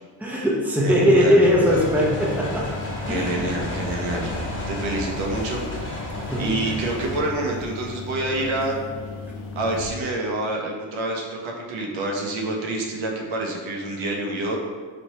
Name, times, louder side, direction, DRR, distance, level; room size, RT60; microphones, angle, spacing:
voice 1, 0.2-2.7 3.0-3.4 6.2-6.8, equal, 5° right, -4 dB, 0.8 m, -20 dB
voice 2, 0.8-1.4 3.1-4.3 4.7-5.6 6.4-8.8 9.6-14.6, right 2 dB, 70° right, 0 dB, 0.8 m, -27 dB
sound 1, 0.9-9.9, left 3 dB, 90° left, 0.6 m, -36 dB
sound 2, 1.7-7.2, left 1 dB, 25° left, 1.2 m, -32 dB
3.2 x 2.5 x 4.1 m, 1.5 s
supercardioid pair, 65°, 48 cm